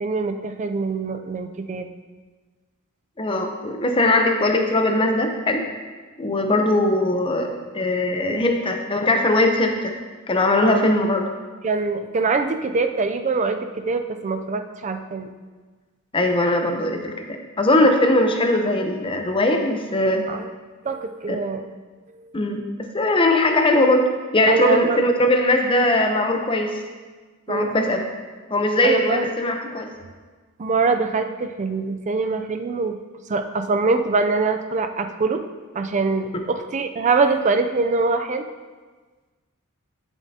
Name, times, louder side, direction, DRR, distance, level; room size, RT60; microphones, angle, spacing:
voice 1, 0.0-1.9 8.3-8.4 10.6-10.9 11.6-15.3 20.3-20.4 20.8-21.7 24.5-25.0 27.5-27.8 28.8-29.3 30.6-33.0 33.3-35.4 35.7-38.4, right 4 dB, 30° right, 7 dB, 0.4 m, -23 dB
voice 2, 3.2-5.6 6.2-9.9 10.3-11.3 16.1-20.2 21.3-21.4 22.3-26.8 27.5-28.0 28.5-29.9, left 1 dB, 25° left, 4 dB, 0.7 m, -20 dB
10.5 x 7.2 x 2.8 m, 1.4 s
head